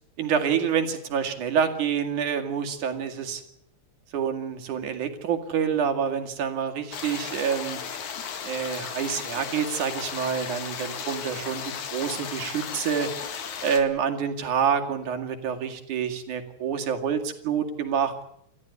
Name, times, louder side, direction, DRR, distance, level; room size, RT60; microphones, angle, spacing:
voice 1, 0.2-3.4 4.1-7.8 8.4-11.6 11.9-13.1 13.6-18.1, right 7 dB, 80° right, 5 dB, 3.7 m, -27 dB
sound 1, 6.9-13.8, left 7 dB, 75° left, 3.5 m, -35 dB
28.5 x 14.0 x 9.6 m, 0.75 s
omnidirectional pair, 3.4 m